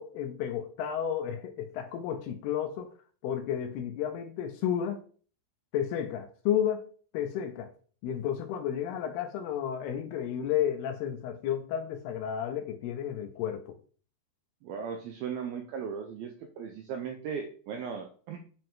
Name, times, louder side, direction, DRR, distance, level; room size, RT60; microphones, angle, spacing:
voice 1, 0.0-2.9 3.2-5.0 5.7-6.9 7.1-7.7 8.0-13.8, left 9 dB, 75° left, 2.5 m, -32 dB
voice 2, 14.6-18.4, right 6 dB, 85° right, 2.2 m, -37 dB
8.7 x 5.2 x 3.7 m
omnidirectional pair, 5.2 m